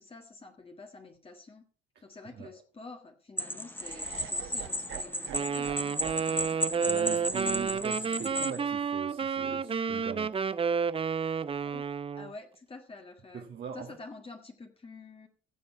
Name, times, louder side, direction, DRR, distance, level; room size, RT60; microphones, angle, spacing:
voice 1, 0.0-1.6 2.0-5.9 11.4-11.9 12.2-13.5 13.7-15.3, left 3 dB, 30° left, 3 dB, 1.6 m, -48 dB
sound 1, 3.4-8.6, left 1 dB, 10° left, 1.2 m, -34 dB
Laughter, 3.8-9.9, right 10 dB, 80° right, 1.0 m, -48 dB
Wind instrument woodwind instrument, 5.3-12.3, right 6 dB, 30° right, 0.5 m, -31 dB
voice 2, 6.8-10.4 13.3-14.0, right 6 dB, 60° right, 1 dB, 1.9 m, -41 dB
15.5 x 6.8 x 4.5 m, 0.39 s
cardioid pair, 90°, 20 cm